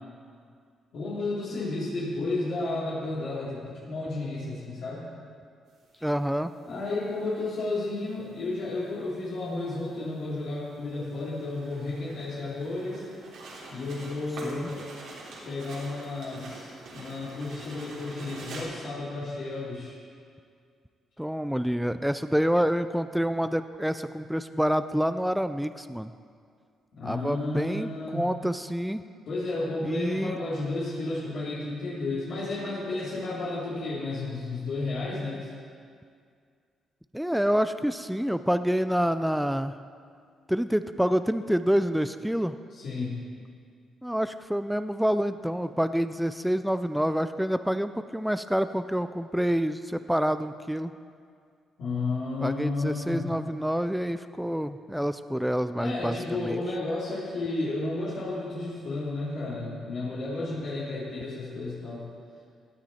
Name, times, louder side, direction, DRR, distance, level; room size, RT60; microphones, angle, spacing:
voice 1, 0.9-5.0 6.6-13.1 13.7-14.9 15.4-19.9 26.9-28.3 29.3-35.5 42.7-43.2 51.8-53.3 55.8-62.1, left 2 dB, 75° left, -8 dB, 3.5 m, -32 dB
sound 1, 5.8-5.9 7.1-7.9 8.2-8.3 8.7-8.8 9.2-9.6 10.0-18.6, right 2 dB, 80° right, 3.1 m, -46 dB
voice 2, 6.0-6.5 14.4-14.7 21.2-26.1 27.0-29.0 29.8-30.4 37.1-39.7 40.5-42.6 44.0-50.9 52.4-56.6, equal, ahead, 11 dB, 0.4 m, -27 dB
16.5 x 9.1 x 4.3 m, 2.2 s
cardioid pair, 95°, 0 cm